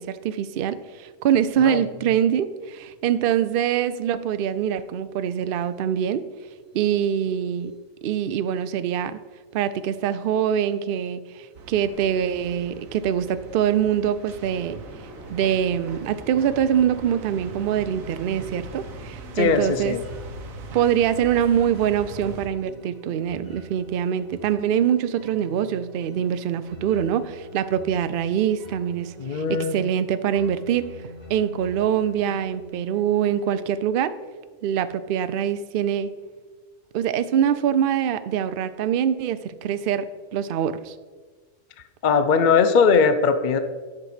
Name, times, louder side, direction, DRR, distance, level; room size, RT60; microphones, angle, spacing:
voice 1, 0.0-6.2 6.7-7.7 8.0-9.2 9.5-14.8 15.3-20.0 20.7-30.9 31.3-34.1 34.6-36.1 36.9-40.9, right 9 dB, 60° right, 12 dB, 0.6 m, -24 dB
sound 1, 9.6-9.7 14.4-19.1, left 1 dB, ahead, 2.9 m, -45 dB
sound 2, 11.5-22.5, right 4 dB, 90° right, 1.3 m, -41 dB
sound 3, 18.3-33.8, left 1 dB, 30° left, 2.2 m, -46 dB
voice 2, 19.4-20.0 29.2-29.8 42.0-43.6, left 5 dB, 55° left, 10 dB, 0.5 m, -19 dB
10.5 x 6.0 x 5.0 m, 1.4 s
omnidirectional pair, 1.4 m